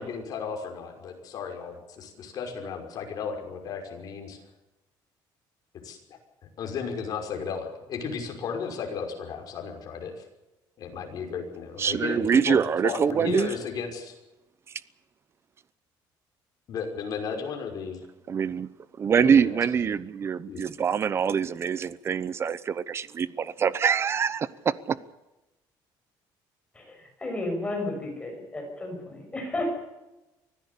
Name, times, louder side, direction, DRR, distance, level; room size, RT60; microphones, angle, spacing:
voice 1, 0.0-4.4 5.8-6.0 6.6-10.1 10.8-14.2 16.7-18.0 19.2-19.8 20.5-20.6, left 6 dB, 50° left, 5.6 m, -34 dB
voice 2, 11.8-13.5 18.3-18.7 19.0-25.0, right 7 dB, 30° right, 0.9 m, -24 dB
voice 3, 26.7-29.7, left 2 dB, 15° left, 6.5 m, -33 dB
24.5 x 16.0 x 8.5 m
cardioid pair, 155°, 8 cm